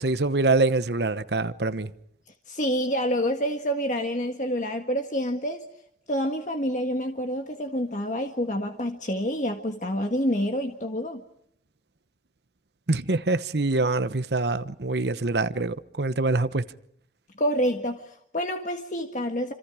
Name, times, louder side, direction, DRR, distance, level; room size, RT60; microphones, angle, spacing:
voice 1, 0.0-1.9 12.9-16.6, right 3 dB, 75° right, 1.0 m, -25 dB
voice 2, 2.5-5.6 6.1-11.2 17.4-19.5, equal, 45° left, 1.7 m, -27 dB
29.0 x 27.0 x 5.0 m
head